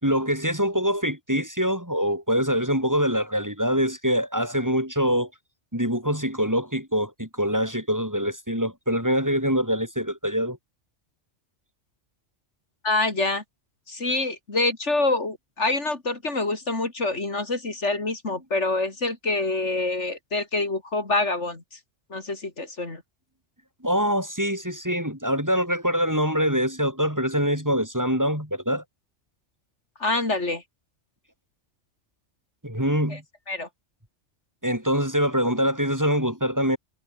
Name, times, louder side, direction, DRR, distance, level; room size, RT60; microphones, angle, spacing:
voice 1, 0.0-5.3 5.7-10.6 23.8-28.8 32.6-33.2 34.6-36.8, equal, 15° right, 5.7 m, -24 dB
voice 2, 12.8-13.4 13.9-21.6 22.1-23.0 30.0-30.6 33.1-33.2 33.5-33.7, left 2 dB, 70° left, 3.8 m, -26 dB
omnidirectional pair, 1.2 m